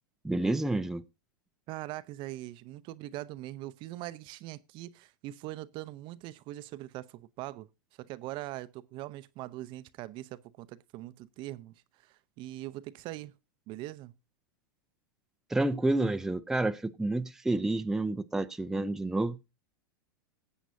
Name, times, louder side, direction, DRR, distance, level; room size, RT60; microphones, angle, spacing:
voice 1, 0.2-1.0 15.5-19.5, right 2 dB, 5° right, 0.5 m, -29 dB
voice 2, 1.7-7.7 8.0-13.3 13.7-14.1, right 16 dB, 45° right, 0.6 m, -42 dB
19.0 x 8.1 x 2.6 m
hypercardioid pair, 105°, 11 cm